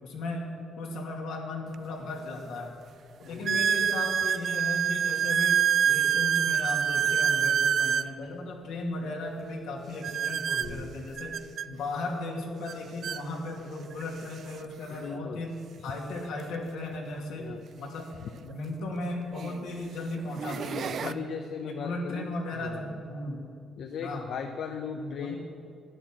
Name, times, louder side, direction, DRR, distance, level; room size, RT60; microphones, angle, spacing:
voice 1, 0.0-2.8 3.3-5.6 5.8-11.4 11.7-18.1 18.4-21.2 21.6-23.4 24.0-24.3 24.9-25.4, left 2 dB, 85° left, 0 dB, 2.3 m, -36 dB
sound 1, 1.7-1.8 2.5-2.6 3.4-8.1 10.0-11.7 12.7-12.8 13.0-13.2 14.0-14.1 16.3-16.4 18.5-18.6 19.3-19.6 20.2-21.1, right 8 dB, 60° right, 0.4 m, -26 dB
voice 2, 3.2-3.6 10.6-10.9 14.9-15.4 17.4-17.6 18.2-18.3 20.7-22.3 22.5-22.9 23.8-25.3, left 6 dB, 70° left, 6 dB, 0.7 m, -37 dB
11.0 x 9.8 x 7.6 m, 2.5 s
cardioid pair, 90°, 0 cm